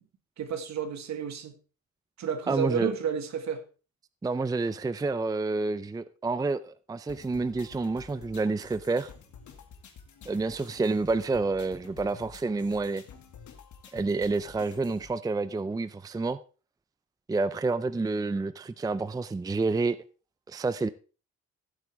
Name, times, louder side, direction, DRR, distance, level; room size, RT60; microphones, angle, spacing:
voice 1, 0.4-1.5 2.2-3.6, right 7 dB, 65° right, 1.8 m, -31 dB
voice 2, 2.5-2.9 4.2-9.1 10.3-13.0 13.9-16.4 17.3-20.0 20.5-20.9, right 3 dB, 10° right, 0.5 m, -29 dB
sound 1, 7.1-15.1, left 7 dB, 70° left, 2.1 m, -50 dB
15.0 x 8.1 x 3.5 m
cardioid pair, 90°, 30 cm